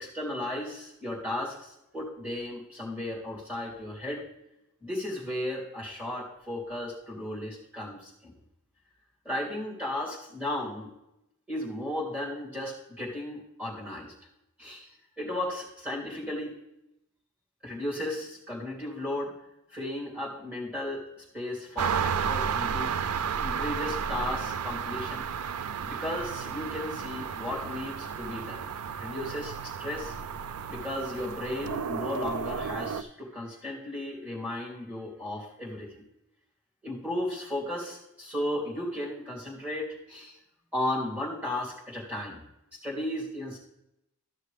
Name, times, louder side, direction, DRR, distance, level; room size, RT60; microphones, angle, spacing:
voice 1, 0.0-4.2 4.8-8.4 9.2-10.9 11.5-14.1 14.6-14.9 15.2-16.5 17.6-19.3 19.7-23.0 23.4-25.3 25.8-28.6 29.0-30.1 30.7-36.0 36.8-40.4 40.7-42.4 42.7-43.6, left 1 dB, 5° right, -5 dB, 2.9 m, -35 dB
sound 1, 21.8-33.0, right 7 dB, 85° right, 0.4 m, -32 dB
13.5 x 6.5 x 3.4 m, 0.85 s
head